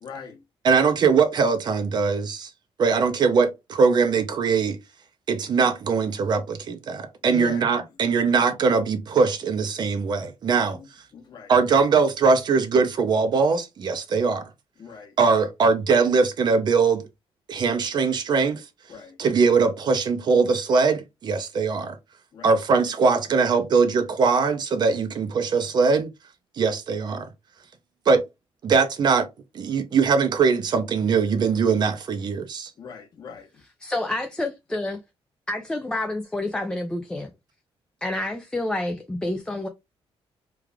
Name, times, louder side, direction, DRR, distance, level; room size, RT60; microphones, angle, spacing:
voice 1, 0.0-0.4 7.3-7.8 10.7-10.9 11.1-11.5 14.8-15.1 18.9-19.2 22.3-22.6 32.8-33.5, left 6 dB, 45° left, 1.0 m, -40 dB
voice 2, 0.6-2.5 2.8-4.8 5.3-10.8 11.5-14.4 15.2-17.0 17.5-18.6 19.2-22.0 22.4-26.1 26.6-27.3 28.1-28.2 28.6-29.3 29.5-32.7, right 5 dB, 45° right, 0.5 m, -21 dB
voice 3, 33.8-35.0 35.5-37.3 38.0-39.7, left 1 dB, 10° left, 0.3 m, -28 dB
3.2 x 2.4 x 3.4 m
cardioid pair, 165°, 10 cm